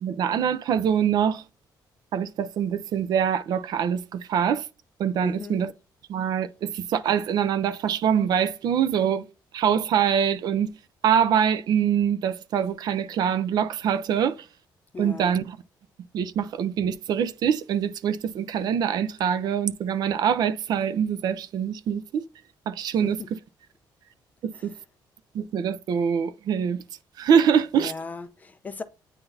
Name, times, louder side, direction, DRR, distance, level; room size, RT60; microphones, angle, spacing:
voice 1, 0.0-1.4 2.1-4.7 5.0-5.7 6.1-9.3 9.5-10.7 11.0-14.5 15.0-15.6 16.1-22.3 22.7-23.4 24.4-24.7 25.3-26.8 27.2-27.9, right 8 dB, 60° right, 0.5 m, -24 dB
voice 2, 5.2-5.6 14.9-15.4 23.0-23.3 27.8-28.8, left 4 dB, 20° left, 0.5 m, -37 dB
9.1 x 3.9 x 2.6 m
cardioid pair, 165°, 8 cm